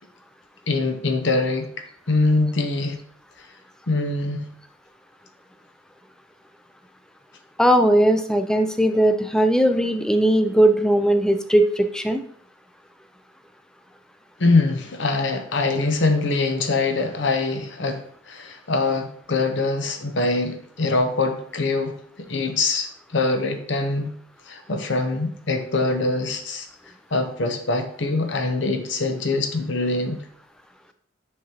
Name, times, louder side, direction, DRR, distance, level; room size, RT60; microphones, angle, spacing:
voice 1, 0.7-1.7 2.1-3.0 3.9-4.5 14.4-21.9 22.3-24.1 24.5-26.7 27.1-30.2, left 3 dB, 65° left, 0.8 m, -23 dB
voice 2, 7.6-12.2, right 1 dB, 5° left, 0.4 m, -18 dB
6.5 x 5.1 x 2.9 m
head